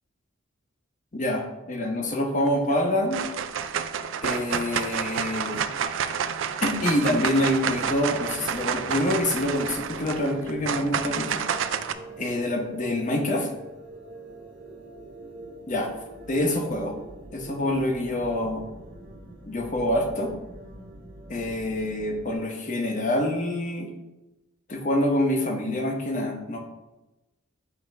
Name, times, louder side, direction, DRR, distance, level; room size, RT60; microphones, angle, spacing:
voice 1, 1.1-3.2 4.2-5.7 6.6-11.4 12.2-13.5 15.7-15.9 16.3-16.9 17.3-18.6 19.5-20.3 21.3-23.9 24.7-26.6, left 1 dB, 35° left, 3 dB, 0.9 m, -26 dB
sound 1, 2.4-2.8 3.1-11.9, right 7 dB, 65° right, 0.4 m, -29 dB
sound 2, 6.6-22.3, right 1 dB, 45° right, 1.5 m, -44 dB
8.1 x 2.9 x 5.3 m, 1.0 s
head